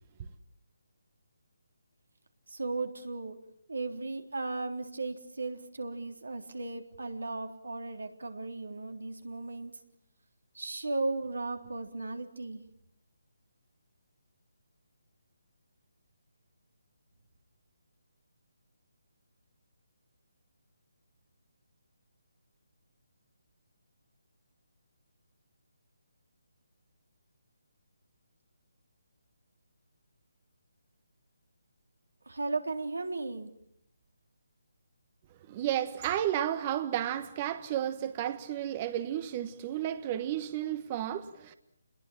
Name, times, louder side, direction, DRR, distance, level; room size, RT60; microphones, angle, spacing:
voice 1, 2.5-3.4 3.7-9.7 10.5-12.6 32.3-33.5, right 3 dB, 85° right, 3.6 m, -36 dB
voice 2, 35.5-41.5, right 11 dB, 30° right, 1.2 m, -32 dB
28.5 x 21.5 x 7.4 m
figure-of-eight pair, 155°, 0 cm